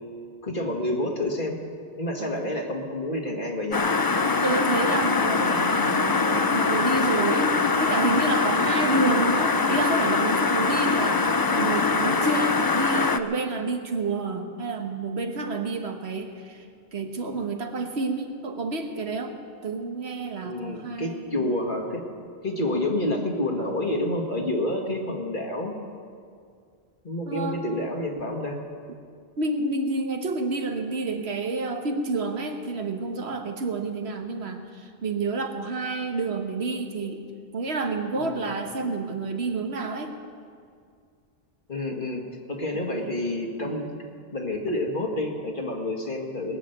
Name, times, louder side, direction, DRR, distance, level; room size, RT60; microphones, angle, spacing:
voice 1, 0.4-1.6 2.0-3.9 20.4-22.0 22.4-25.8 27.0-28.6 38.2-38.4 41.7-42.2 42.5-43.9 44.3-46.6, left 1 dB, 50° left, 1 dB, 2.0 m, -28 dB
voice 2, 2.2-2.5 4.4-21.5 27.3-27.6 29.4-37.2 37.5-40.1 42.9-43.1 43.6-43.8, right 3 dB, 75° right, 5 dB, 1.5 m, -29 dB
sound 1, 3.7-13.2, left 4 dB, 30° left, 0.4 m, -23 dB
20.0 x 7.4 x 9.2 m, 2.2 s
omnidirectional pair, 1.1 m